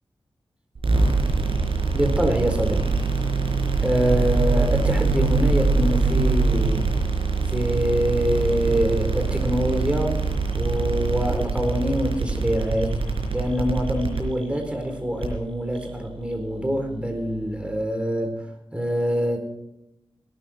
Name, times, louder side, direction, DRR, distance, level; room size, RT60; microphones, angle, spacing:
sound 1, 0.8-17.8, right 4 dB, 80° right, 4.4 m, -24 dB
voice 1, 1.9-2.9 3.8-6.9 7.5-10.2 10.5-13.0 13.3-18.5 18.7-19.4, equal, 10° right, 5 dB, 4.2 m, -25 dB
18.0 x 12.5 x 4.5 m, 0.89 s
wide cardioid pair, 80°, 9 cm